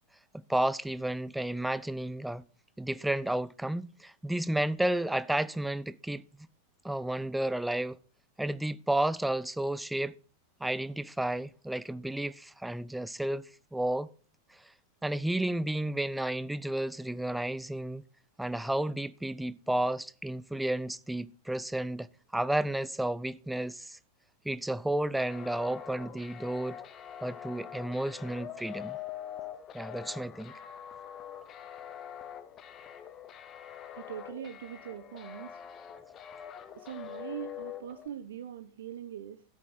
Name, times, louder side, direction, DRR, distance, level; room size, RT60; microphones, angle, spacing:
voice 1, 0.3-2.4 2.8-6.2 6.8-8.0 8.4-10.1 10.6-14.1 15.0-18.0 18.4-24.0 24.4-26.8 27.2-29.0 29.7-30.5, right 1 dB, 5° right, 0.4 m, -32 dB
sound 1, 25.1-38.1, left 10 dB, 30° left, 1.1 m, -44 dB
voice 2, 33.9-35.6 36.7-39.4, right 9 dB, 60° right, 0.7 m, -42 dB
13.5 x 8.3 x 4.3 m
figure-of-eight pair, 90°, 0 cm